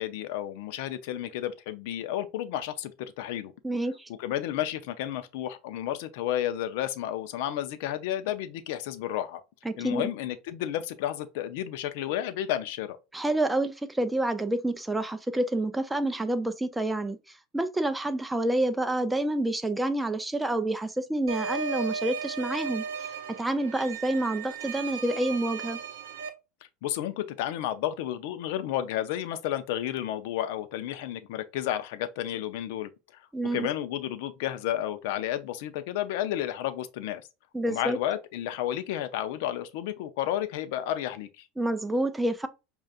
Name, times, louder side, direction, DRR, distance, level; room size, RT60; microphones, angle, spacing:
voice 1, 0.0-2.9 3.2-3.5 4.2-9.4 9.8-13.0 26.8-33.2 33.5-37.2 37.7-41.5, left 12 dB, 70° left, 0.5 m, -32 dB
voice 2, 3.6-4.1 9.6-10.1 13.1-17.2 17.5-22.8 23.4-25.8 33.3-33.7 37.5-38.0 41.6-42.5, right 1 dB, 10° right, 0.5 m, -28 dB
sound 1, 21.3-26.3, right 6 dB, 85° right, 0.5 m, -35 dB
5.2 x 2.4 x 2.4 m
hypercardioid pair, 85°, 0 cm